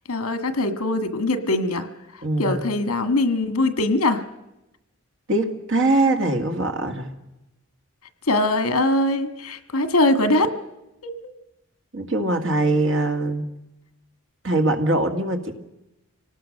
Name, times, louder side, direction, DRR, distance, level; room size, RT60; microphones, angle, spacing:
voice 1, 0.1-1.9 2.1-4.2 8.3-10.5 11.0-11.2, left 2 dB, 75° left, 9 dB, 1.7 m, -22 dB
voice 2, 2.2-2.6 5.3-7.1 11.9-13.5 14.4-15.5, right 2 dB, 55° right, 5 dB, 2.0 m, -22 dB
26.0 x 18.5 x 6.5 m, 0.93 s
head